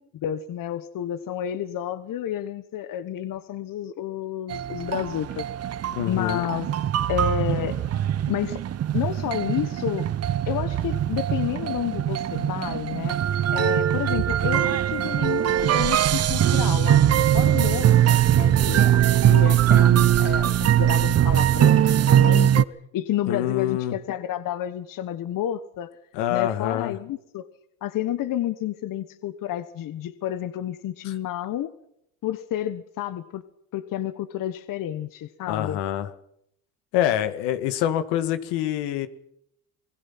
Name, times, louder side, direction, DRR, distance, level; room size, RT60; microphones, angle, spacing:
voice 1, 0.1-5.4 6.1-6.7 7.1-7.9 8.3-8.6 8.9-10.1 10.5-13.2 13.5-25.9 26.3-27.4 27.8-31.7 32.2-33.4 33.7-35.8, left 11 dB, 55° left, 13 dB, 1.3 m, -30 dB
sound 1, 4.5-22.6, right 11 dB, 40° right, 0.8 m, -21 dB
voice 2, 5.9-6.4 23.3-24.0 26.1-27.0 31.0-31.1 35.5-36.1 36.9-39.1, left 11 dB, 80° left, 10 dB, 2.0 m, -26 dB
27.5 x 18.0 x 5.9 m, 0.74 s
supercardioid pair, 100°, 40 cm